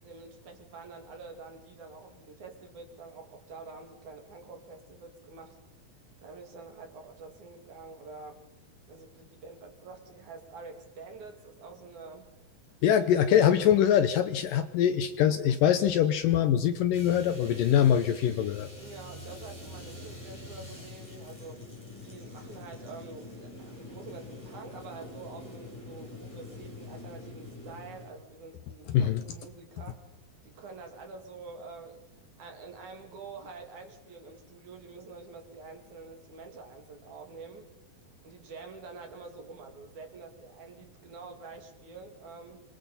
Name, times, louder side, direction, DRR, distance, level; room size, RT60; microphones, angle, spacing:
voice 1, 0.0-5.6 6.2-8.4 8.9-12.3 18.8-21.6 22.0-30.0 30.4-32.0 32.4-37.7 38.2-42.6, right 4 dB, 55° right, 4 dB, 3.5 m, -47 dB
voice 2, 12.8-18.7 28.9-29.2, left 9 dB, 75° left, 10 dB, 2.2 m, -23 dB
sound 1, 16.9-28.1, left 2 dB, 10° left, 3.9 m, -45 dB
27.0 x 24.0 x 4.2 m, 0.95 s
omnidirectional pair, 4.5 m